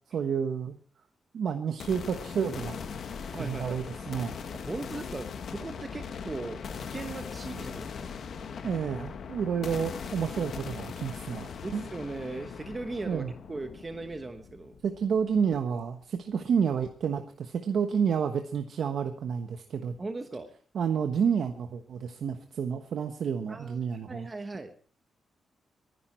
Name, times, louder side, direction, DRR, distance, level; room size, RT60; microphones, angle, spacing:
voice 1, 0.1-0.8 1.3-2.8 3.4-4.4 8.6-11.9 13.1-13.3 14.8-20.0 20.7-24.3, right 7 dB, 60° right, 6 dB, 1.2 m, -30 dB
sound 1, 1.8-15.7, left 6 dB, 55° left, 1.5 m, -40 dB
voice 2, 3.3-3.8 4.5-8.1 11.6-14.8 20.0-20.5 23.5-24.7, right 3 dB, 20° right, 7 dB, 1.2 m, -38 dB
23.5 x 11.0 x 4.5 m, 0.43 s
wide cardioid pair, 175°, 0 cm